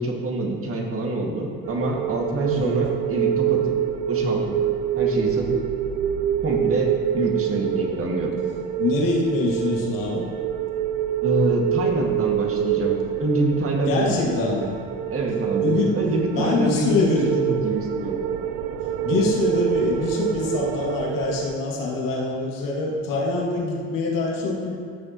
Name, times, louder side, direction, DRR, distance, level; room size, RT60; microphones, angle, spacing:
voice 1, 0.0-3.7 4.1-4.6 4.9-5.6 6.4-8.3 11.2-12.9 13.2-14.4 15.1-18.2, right 2 dB, 40° right, 0 dB, 1.9 m, -25 dB
sound 1, 1.6-21.6, right 10 dB, 75° right, 0.6 m, -26 dB
voice 2, 2.5-2.8 8.8-10.3 13.9-14.7 15.5-15.9 16.3-17.3 19.0-24.8, left 3 dB, 70° left, -3 dB, 2.2 m, -24 dB
15.0 x 6.8 x 3.0 m, 2.2 s
supercardioid pair, 90°, 34 cm